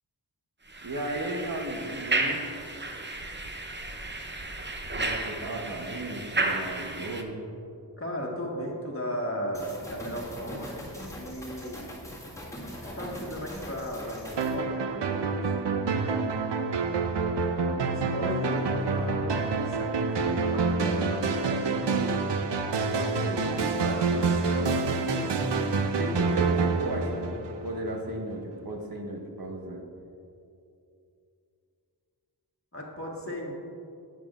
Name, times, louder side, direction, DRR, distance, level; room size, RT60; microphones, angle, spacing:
sound 1, 0.7-7.2, right 2 dB, 25° right, 0.7 m, -33 dB
voice 1, 0.8-2.4 4.9-7.5 25.3-25.7 26.0-29.8, right 1 dB, 55° right, 0 dB, 1.0 m, -35 dB
voice 2, 8.0-11.9 12.8-15.4 15.7-16.2 17.6-22.3 22.8-25.6 32.7-33.5, equal, 30° left, -2 dB, 1.5 m, -37 dB
sound 2, 9.5-14.6, equal, 5° left, 1.7 m, -41 dB
sound 3, 14.4-27.9, right 4 dB, 75° right, 0.6 m, -27 dB
9.2 x 8.3 x 2.5 m, 2.6 s
wide cardioid pair, 40°, 43 cm